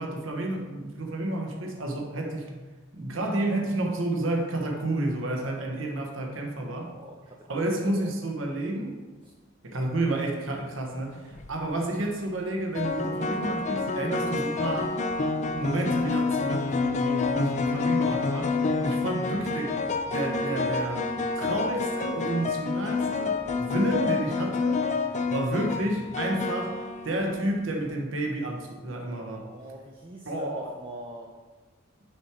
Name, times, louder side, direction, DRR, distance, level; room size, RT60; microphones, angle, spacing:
voice 1, 0.0-2.5 2.9-6.9 7.5-9.0 9.6-15.0 15.5-19.8 20.1-24.8 25.3-26.7 27.0-29.5 30.3-30.7, right 2 dB, 70° right, 2 dB, 1.1 m, -30 dB
voice 2, 7.5-8.2 9.2-9.3 29.4-31.3, right 1 dB, 25° right, 1 dB, 0.6 m, -43 dB
sound 1, 11.2-11.5 12.7-27.6, left 4 dB, 35° left, 0.4 m, -28 dB
6.4 x 4.4 x 4.9 m, 1.3 s
head